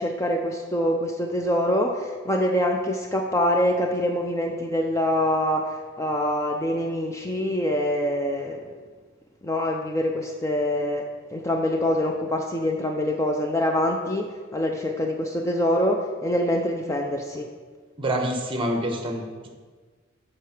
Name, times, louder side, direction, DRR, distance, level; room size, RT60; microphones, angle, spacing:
voice 1, 0.0-8.7 9.4-11.1 11.3-17.5, left 1 dB, 15° left, 2 dB, 0.5 m, -25 dB
voice 2, 18.0-19.5, right 1 dB, 25° right, 3 dB, 1.2 m, -27 dB
8.2 x 5.5 x 6.0 m, 1.5 s
head